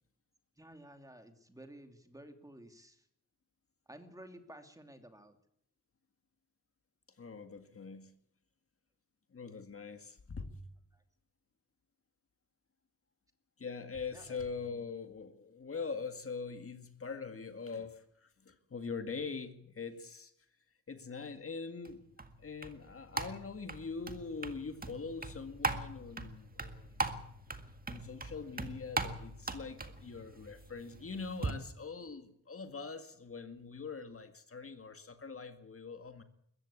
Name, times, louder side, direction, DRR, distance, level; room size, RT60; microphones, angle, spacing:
voice 1, 0.6-3.1 3.9-5.4 10.9-11.0 14.1-14.8, right 1 dB, 10° right, 2.5 m, -54 dB
voice 2, 7.2-8.1 9.3-10.6 13.6-20.3 20.9-22.0 22.4-27.0 27.9-36.2, left 4 dB, 50° left, 2.0 m, -43 dB
sound 1, 21.8-31.5, right 3 dB, 30° right, 1.9 m, -40 dB
22.0 x 16.0 x 8.6 m
wide cardioid pair, 130°, 30 cm